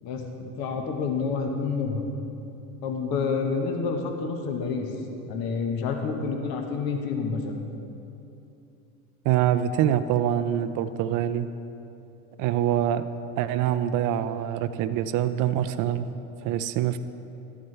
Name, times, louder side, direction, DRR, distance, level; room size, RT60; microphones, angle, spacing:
voice 1, 0.0-2.0 2.8-4.9 5.3-7.6, left 5 dB, 55° left, 3 dB, 1.3 m, -28 dB
voice 2, 9.2-11.5 12.4-13.1 13.4-16.1 16.4-17.0, right 10 dB, 45° right, 10 dB, 0.5 m, -25 dB
12.5 x 8.7 x 3.3 m, 2.8 s
hypercardioid pair, 90°, 44 cm